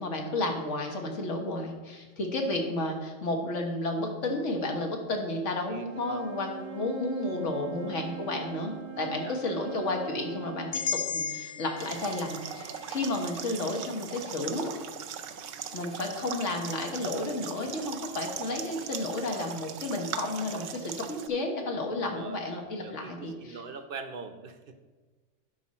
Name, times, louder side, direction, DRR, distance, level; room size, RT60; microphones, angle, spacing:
voice 1, 0.0-14.7 15.7-23.6, left 2 dB, 75° left, 2 dB, 1.7 m, -32 dB
voice 2, 5.7-6.2 9.0-9.4 21.9-22.4 22.8-24.8, right 4 dB, 55° right, 8 dB, 0.7 m, -42 dB
Wind instrument woodwind instrument, 5.8-10.8, right 11 dB, 25° right, 0.8 m, -42 dB
sound 1, 10.7-14.8, left 7 dB, 55° left, 0.8 m, -37 dB
sound 2, 11.8-21.3, right 8 dB, 80° right, 1.0 m, -39 dB
11.0 x 5.3 x 4.2 m, 1.3 s
omnidirectional pair, 1.3 m